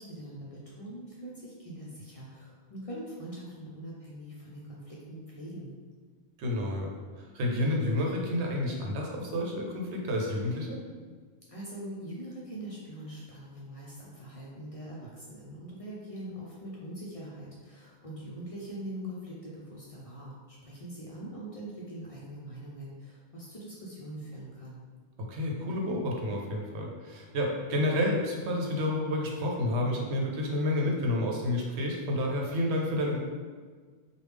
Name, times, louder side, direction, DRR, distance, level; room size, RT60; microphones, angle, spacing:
voice 1, 0.0-5.7 11.5-24.8, right 1 dB, 45° left, -5 dB, 0.5 m, -42 dB
voice 2, 6.4-6.9 7.2-10.8 25.3-33.2, left 1 dB, 90° right, -1 dB, 0.9 m, -30 dB
3.2 x 2.3 x 3.3 m, 1.5 s
omnidirectional pair, 1.1 m